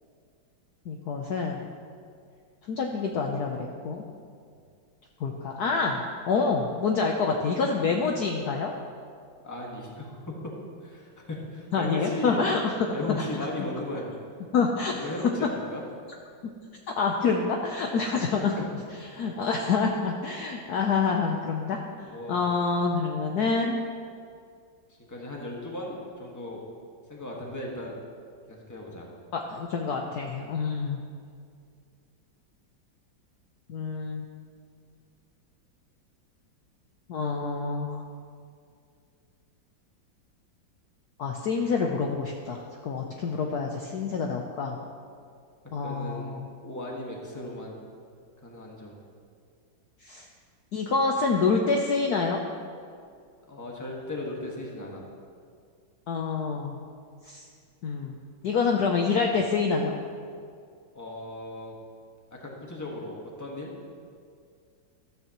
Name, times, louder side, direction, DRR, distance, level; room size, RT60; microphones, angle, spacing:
voice 1, 0.9-1.7 2.7-4.0 5.2-6.0 6.3-8.7 11.7-12.7 13.1-13.3 14.5-15.1 17.0-18.6 19.1-21.8 22.1-23.8 29.3-31.0 33.7-34.3 37.1-38.0 41.2-44.8 45.7-46.5 50.0-50.3 50.7-52.4 56.1-56.8 57.2-57.4 57.8-58.1 58.4-60.0, left 4 dB, 60° left, 1 dB, 1.1 m, -27 dB
voice 2, 9.4-10.2 10.8-12.4 12.9-14.2 14.9-15.8 22.0-22.4 25.1-26.6 27.1-27.9 28.5-29.1 45.8-47.8 48.4-49.0 53.5-55.0 60.9-61.8 62.3-63.7, left 1 dB, 10° left, -2 dB, 1.5 m, -36 dB
14.0 x 12.5 x 3.0 m, 2.3 s
omnidirectional pair, 2.2 m